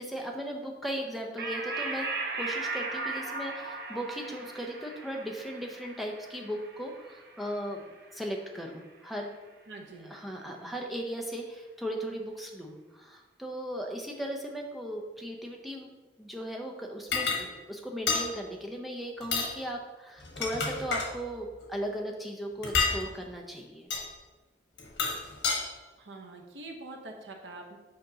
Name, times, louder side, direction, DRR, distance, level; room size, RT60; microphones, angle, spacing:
voice 1, 0.0-2.1 2.4-7.8 8.1-9.3 9.9-15.9 16.2-23.9, equal, ahead, 0 dB, 0.6 m, -37 dB
sound 1, 1.4-8.3, right 3 dB, 60° right, 0.9 m, -37 dB
voice 2, 9.7-10.2 26.0-27.8, right 2 dB, 85° right, 2 dB, 0.9 m, -44 dB
sound 2, 17.1-17.4 18.1-18.3 19.2-19.5 20.2-21.1 22.6-23.0 23.9-24.1 24.8-25.6, left 4 dB, 80° left, 1.2 m, -29 dB
7.8 x 5.1 x 2.8 m, 1.3 s
head